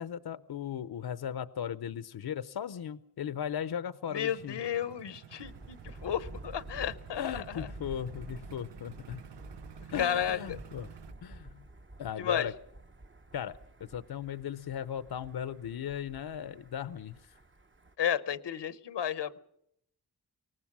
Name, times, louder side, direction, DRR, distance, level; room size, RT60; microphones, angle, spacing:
voice 1, 0.0-4.6 7.1-9.2 9.9-10.9 11.2-11.6 12.0-12.5 13.3-17.2, left 9 dB, 65° left, 14 dB, 0.7 m, -37 dB
voice 2, 4.1-7.7 9.9-10.6 12.2-12.5 18.0-19.4, left 9 dB, 90° left, 14 dB, 1.0 m, -33 dB
sound 1, 4.3-11.1, right 10 dB, 90° right, 0.8 m, -51 dB
Thunder, 5.4-17.9, right 2 dB, 30° right, 1.0 m, -49 dB
23.5 x 19.0 x 6.1 m, 0.75 s
wide cardioid pair, 80°, 41 cm